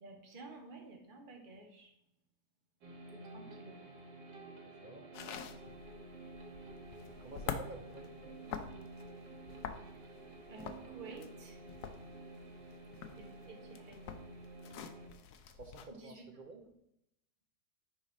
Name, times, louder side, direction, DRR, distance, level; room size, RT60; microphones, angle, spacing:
voice 1, 0.0-1.9 3.1-3.8 10.5-11.6 13.1-14.2 15.9-16.2, right 3 dB, 30° right, 2 dB, 1.3 m, -52 dB
sound 1, 2.8-15.1, right 2 dB, 90° right, 2.0 m, -51 dB
sound 2, 5.1-15.9, left 7 dB, 70° left, 1.1 m, -47 dB
voice 2, 7.2-8.5 15.5-16.6, right 2 dB, 55° right, 4 dB, 0.5 m, -51 dB
10.0 x 4.1 x 4.1 m, 0.80 s
omnidirectional pair, 1.8 m